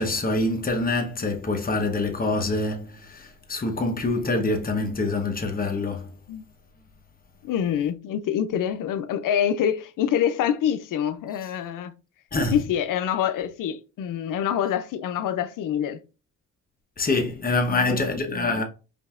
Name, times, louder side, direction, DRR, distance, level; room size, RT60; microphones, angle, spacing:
voice 1, 0.0-6.1 12.3-12.6 17.0-18.6, left 2 dB, 30° left, 1.0 m, -25 dB
voice 2, 7.4-11.9 12.5-16.0 17.7-18.6, left 9 dB, 80° left, 0.5 m, -26 dB
5.2 x 2.7 x 2.4 m
cardioid pair, 105°, 31 cm